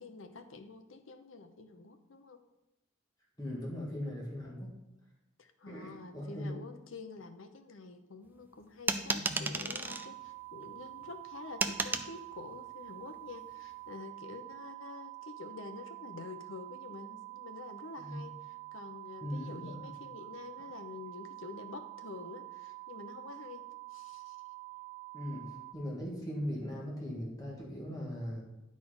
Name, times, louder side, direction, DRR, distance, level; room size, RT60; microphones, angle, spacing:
voice 1, 0.0-2.4 5.4-23.6 23.9-24.4, left 4 dB, 85° left, 7 dB, 0.8 m, -48 dB
voice 2, 3.4-4.8 5.7-6.6 9.2-9.5 18.0-18.2 19.2-19.9 25.1-28.4, equal, 20° left, -3 dB, 1.8 m, -39 dB
sound 1, 8.9-10.1 11.6-12.1, right 3 dB, 10° right, 0.4 m, -32 dB
sound 2, 9.9-25.7, right 24 dB, 75° right, 0.5 m, -47 dB
10.5 x 4.3 x 4.8 m, 0.95 s
head